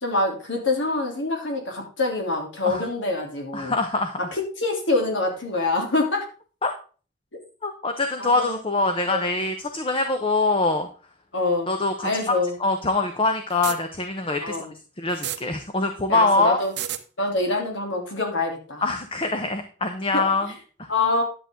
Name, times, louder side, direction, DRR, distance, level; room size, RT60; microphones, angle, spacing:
voice 1, 0.0-3.7 4.3-6.3 8.2-8.6 9.1-9.2 11.3-11.7 12.0-12.6 14.4-14.7 16.1-16.7 17.2-18.8 20.1-20.3 20.9-21.2, left 2 dB, 65° left, 2 dB, 3.2 m, -25 dB
voice 2, 3.5-4.2 6.6-6.7 7.6-10.9 11.7-14.6 15.0-16.6 18.8-20.5 20.8-20.9, left 3 dB, 25° left, 6 dB, 0.9 m, -24 dB
sound 1, 13.5-13.8 15.1-15.4 16.6-17.0, right 11 dB, 55° right, 0.9 m, -29 dB
11.0 x 7.9 x 3.8 m, 0.37 s
head